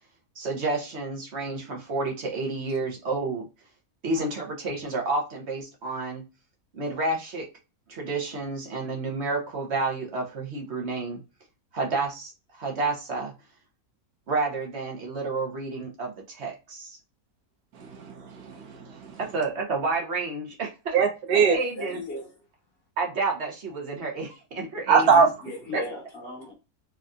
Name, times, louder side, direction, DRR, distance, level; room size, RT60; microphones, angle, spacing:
voice 1, 0.4-3.5 4.0-6.2 6.7-7.5 7.9-11.2 11.7-12.3 12.6-13.3 14.3-17.0 19.2-21.0 21.3-22.0 23.0-25.3 25.7-25.8, right 3 dB, 55° right, 1.0 m, -30 dB
voice 2, 17.8-19.2 20.9-21.6 24.9-25.3, right 6 dB, 90° right, 1.3 m, -22 dB
voice 3, 21.3-22.3 25.4-26.5, left 1 dB, 45° left, 1.0 m, -36 dB
3.4 x 2.6 x 2.3 m
omnidirectional pair, 1.5 m